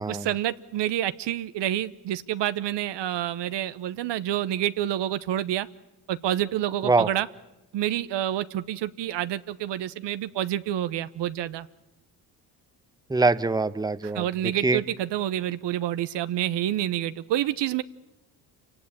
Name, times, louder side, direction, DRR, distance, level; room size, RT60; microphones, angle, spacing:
voice 1, 0.1-5.7 6.1-7.3 7.7-11.7 14.1-17.8, right 12 dB, 65° right, 13 dB, 0.9 m, -28 dB
voice 2, 13.1-14.3 14.6-14.8, right 3 dB, 10° right, 13 dB, 1.0 m, -23 dB
27.5 x 17.5 x 8.8 m, 1.0 s
supercardioid pair, 60°, 46 cm